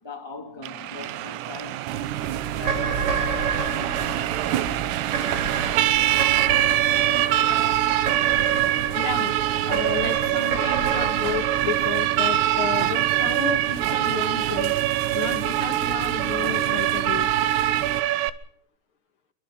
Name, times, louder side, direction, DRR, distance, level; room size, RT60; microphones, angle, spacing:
voice 1, 0.0-2.1 2.5-4.3, left 2 dB, 20° left, 0.6 m, -40 dB
Siren, 0.6-18.3, right 14 dB, 85° right, 3.6 m, -24 dB
sound 1, 1.9-18.0, right 10 dB, 70° right, 3.0 m, -32 dB
sound 2, 2.6-13.0, right 6 dB, 50° right, 2.2 m, -30 dB
voice 2, 8.9-9.3 9.6-14.7 15.1-17.3, left 7 dB, 70° left, 1.2 m, -32 dB
28.5 x 24.0 x 3.9 m
omnidirectional pair, 5.8 m